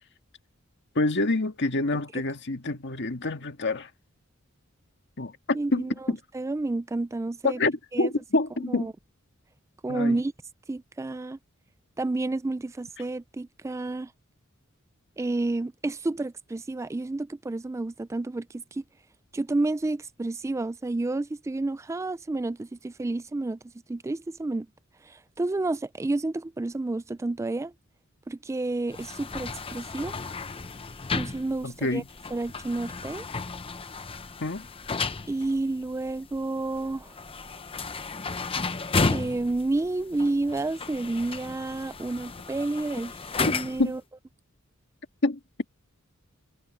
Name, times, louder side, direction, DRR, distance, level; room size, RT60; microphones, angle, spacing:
voice 1, 1.0-3.9 5.2-6.2 7.4-8.9 9.9-10.2 13.0-13.1 31.6-32.1 34.4-34.6 43.8-43.9 45.2-45.4, left 2 dB, 60° left, 1.8 m, -27 dB
voice 2, 5.5-5.9 6.3-7.6 7.9-8.1 8.7-8.9 9.8-10.3 10.7-11.4 12.0-14.1 15.2-18.8 19.3-23.6 23.9-24.7 25.0-27.7 28.3-30.1 31.1-32.0 32.3-33.3 35.3-37.1 39.1-43.1 43.4-44.0, right 2 dB, 15° right, 0.3 m, -30 dB
sound 1, 28.9-44.0, left 4 dB, 25° left, 0.8 m, -33 dB
head